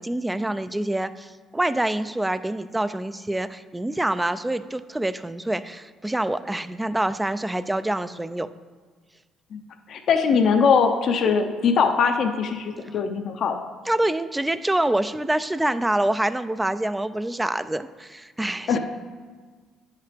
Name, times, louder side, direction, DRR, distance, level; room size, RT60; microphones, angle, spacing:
voice 1, 0.0-8.5 13.9-18.8, right 1 dB, 10° right, 13 dB, 0.3 m, -26 dB
voice 2, 9.9-13.6 18.7-18.8, left 6 dB, 60° left, 5 dB, 0.6 m, -21 dB
9.8 x 5.7 x 3.4 m, 1.5 s
cardioid pair, 90°, 0 cm